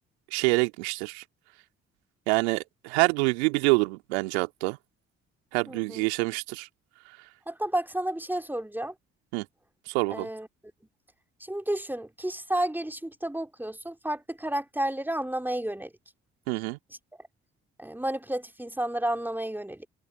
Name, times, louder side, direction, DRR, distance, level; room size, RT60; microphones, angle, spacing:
voice 1, 0.3-1.2 2.3-4.8 5.5-6.7 9.3-9.5 9.9-10.3 16.5-16.8, right 28 dB, 75° right, 2.2 m, -26 dB
voice 2, 5.7-6.0 7.5-8.9 10.1-10.5 11.4-15.9 17.2-17.3 17.8-19.9, right 1 dB, 5° right, 3.2 m, -31 dB
figure-of-eight pair, 40°, 33 cm